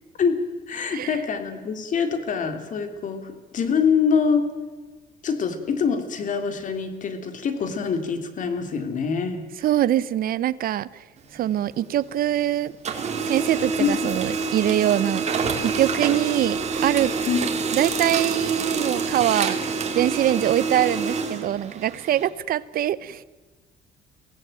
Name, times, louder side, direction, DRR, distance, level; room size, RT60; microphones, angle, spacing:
voice 1, 0.7-4.5 5.2-9.4 13.8-14.0 17.3-17.4, left 6 dB, 50° left, 8 dB, 3.1 m, -24 dB
voice 2, 9.6-10.9 11.3-12.7 13.3-17.1 17.7-19.6 19.9-23.2, right 12 dB, 60° right, 18 dB, 0.8 m, -23 dB
Printer, 11.2-12.4 12.7-22.3, right 4 dB, 40° right, 3.4 m, -27 dB
23.5 x 17.0 x 9.1 m, 1.3 s
cardioid pair, 110°, 17 cm